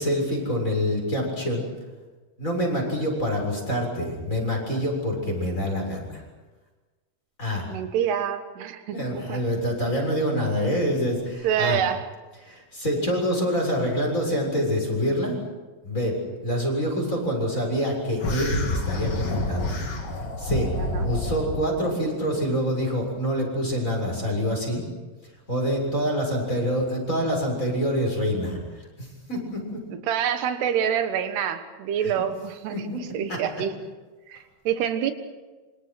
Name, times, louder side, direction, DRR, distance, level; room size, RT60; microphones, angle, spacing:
voice 1, 0.0-1.6 2.4-6.2 7.4-7.7 8.9-11.8 12.4-15.4 15.8-19.8 20.4-20.7 21.0-24.8 25.5-28.6 29.0-29.8 32.0-32.1 32.7-33.0 33.3-33.4, equal, 20° left, 1 dB, 7.2 m, -26 dB
voice 2, 7.7-9.4 11.4-12.1 14.5-14.6 20.8-21.1 29.9-33.7 34.3-35.1, right 9 dB, 85° right, 8 dB, 3.5 m, -27 dB
sound 1, 18.2-21.6, left 1 dB, 40° left, 3.8 m, -28 dB
27.5 x 26.0 x 6.2 m, 1.3 s
omnidirectional pair, 4.6 m